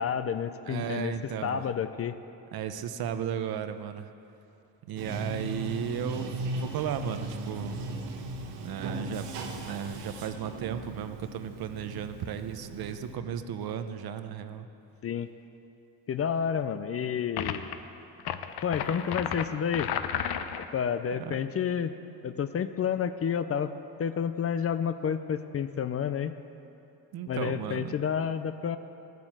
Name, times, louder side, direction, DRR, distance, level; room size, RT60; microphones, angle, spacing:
voice 1, 0.0-1.1 1.4-2.2 15.0-15.3 16.1-17.7 18.6-19.9 20.7-21.9 22.2-23.7 24.0-26.3 27.3-28.8, left 7 dB, 35° left, 11 dB, 0.5 m, -30 dB
voice 2, 0.7-1.6 2.5-4.1 4.8-7.9 8.6-14.7 21.1-21.3 27.1-27.9, right 8 dB, 60° right, 9 dB, 0.9 m, -35 dB
Bathtub (filling or washing), 5.0-13.1, right 2 dB, 85° right, 1.5 m, -38 dB
sound 1, 17.4-17.7 18.2-20.7, left 9 dB, 65° left, 0.8 m, -33 dB
14.0 x 9.4 x 7.4 m, 2.8 s
cardioid pair, 120°, 41 cm